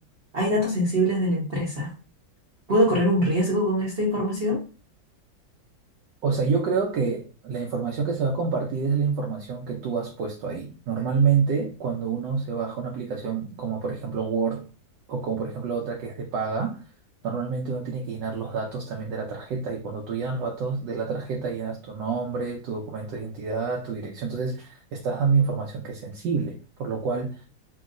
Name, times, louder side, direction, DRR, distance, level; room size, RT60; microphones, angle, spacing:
voice 1, 0.3-1.9 2.7-4.6, equal, 45° right, 0.8 m, -23 dB
voice 2, 6.2-14.7 15.1-16.8 17.2-27.4, right 5 dB, 75° right, 1.2 m, -28 dB
3.0 x 2.7 x 2.4 m
omnidirectional pair, 2.1 m